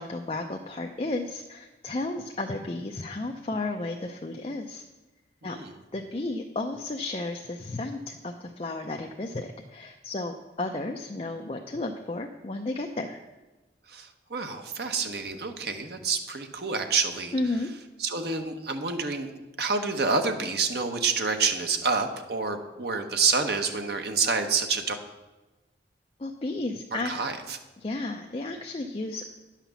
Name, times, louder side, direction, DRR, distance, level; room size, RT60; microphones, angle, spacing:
voice 1, 0.0-4.8 5.4-5.6 5.9-13.2 17.3-17.7 26.2-27.1 27.8-29.2, left 2 dB, 35° left, 3 dB, 0.5 m, -33 dB
voice 2, 5.4-5.7 13.9-17.3 18.0-19.3 19.6-25.0 26.9-27.6, right 4 dB, 65° right, 5 dB, 1.0 m, -28 dB
10.0 x 5.8 x 7.0 m, 1.1 s
head